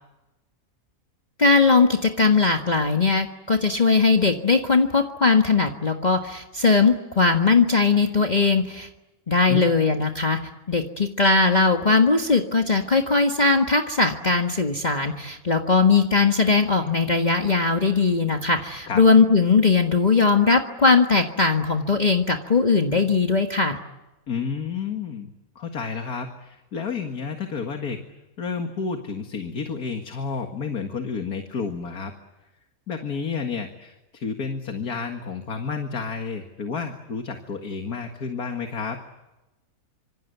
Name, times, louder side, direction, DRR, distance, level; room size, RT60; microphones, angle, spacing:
voice 1, 1.4-8.9 9.3-10.4 10.7-23.8, left 4 dB, 30° left, 3 dB, 1.6 m, -19 dB
voice 2, 24.3-28.0 28.4-32.1 32.9-39.0, left 5 dB, 90° left, 5 dB, 2.4 m, -30 dB
26.5 x 26.0 x 8.2 m, 1.0 s
omnidirectional pair, 1.6 m